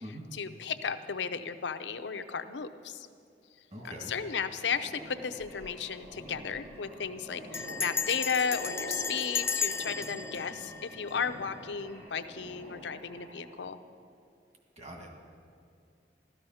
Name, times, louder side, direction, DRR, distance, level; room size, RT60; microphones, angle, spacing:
voice 1, 0.3-3.1 3.8-13.8, left 6 dB, 80° left, 11 dB, 0.7 m, -34 dB
voice 2, 3.7-4.1 14.8-15.1, equal, 40° right, 1 dB, 2.0 m, -43 dB
sound 1, 3.8-13.7, equal, 85° right, 4.7 m, -46 dB
Bell, 5.4-5.8 6.0-6.1 6.4-6.7 7.5-11.6, left 5 dB, 15° left, 0.4 m, -35 dB
15.0 x 13.0 x 5.6 m, 2.4 s
head